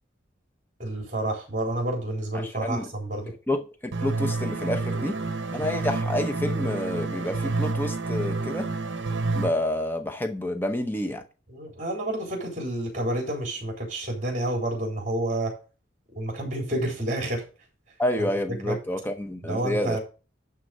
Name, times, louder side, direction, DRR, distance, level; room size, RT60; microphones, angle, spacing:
voice 1, 0.8-3.3 11.5-15.5 16.1-17.4 18.2-18.3 18.7-18.8 19.4-20.0, right 1 dB, 40° right, 3.7 m, -29 dB
voice 2, 2.4-2.9 3.5-5.2 5.5-8.7 9.3-11.2 18.0-20.0, left 1 dB, 10° left, 0.8 m, -29 dB
sound 1, 3.9-9.5, right 3 dB, 75° right, 0.9 m, -28 dB
11.5 x 4.0 x 6.3 m
head